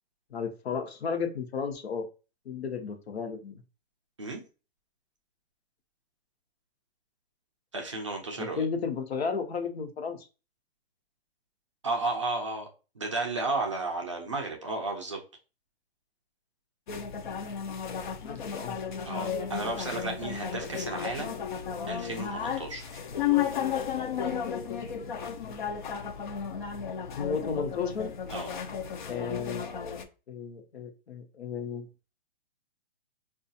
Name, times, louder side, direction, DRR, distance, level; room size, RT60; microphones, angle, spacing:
voice 1, 0.3-2.1 2.4-3.6 8.4-10.3 18.2-18.8 25.3-25.6 27.2-28.1 29.0-29.9 30.3-31.9, left 5 dB, 75° left, 0.9 m, -33 dB
voice 2, 7.7-8.7 11.8-12.7 13.0-15.2 19.1-21.4 21.9-23.0 28.3-28.6, right 3 dB, 30° right, 0.4 m, -33 dB
sound 1, 16.9-30.0, left 8 dB, 50° left, 0.5 m, -33 dB
4.5 x 2.3 x 2.6 m
hypercardioid pair, 175°, 31 cm